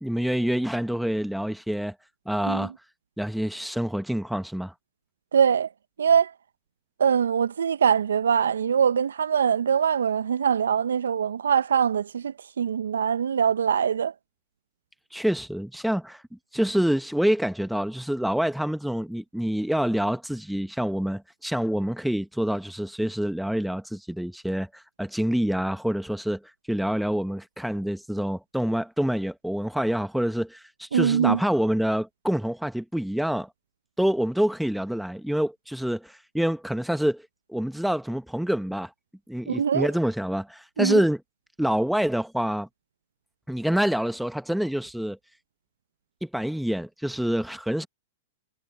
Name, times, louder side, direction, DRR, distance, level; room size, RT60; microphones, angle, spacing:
voice 1, 0.0-1.9 2.2-2.7 3.2-4.7 15.1-16.2 16.5-26.4 26.7-33.5 34.0-37.2 37.5-38.9 39.3-41.2 41.6-42.7 43.5-45.2 46.2-47.9, equal, ahead, 1.5 m, -26 dB
voice 2, 5.3-5.7 6.0-6.3 7.0-14.1 30.9-31.4 39.5-39.9 40.8-41.0, right 7 dB, 75° right, 0.9 m, -23 dB
hypercardioid pair, 105°, 0 cm